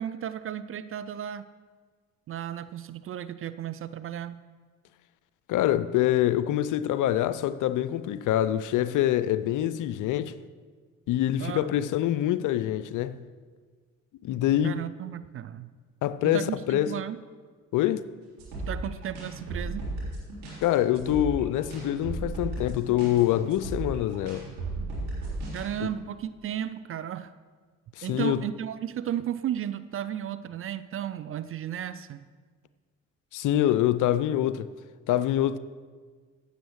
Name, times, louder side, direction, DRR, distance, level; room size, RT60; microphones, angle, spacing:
voice 1, 0.0-1.4 2.3-4.4 11.4-11.7 14.6-15.7 16.2-17.2 18.7-19.8 25.5-27.3 28.0-32.2, right 10 dB, 35° right, 0.4 m, -34 dB
voice 2, 5.5-10.4 11.1-13.2 14.2-14.8 16.0-16.9 17.7-18.0 20.6-24.4 28.0-28.4 33.3-34.7 35.1-35.6, left 12 dB, 50° left, 0.5 m, -25 dB
sound 1, 18.4-25.7, right 2 dB, 70° right, 3.5 m, -35 dB
15.0 x 8.2 x 3.1 m
figure-of-eight pair, 45°, 40 cm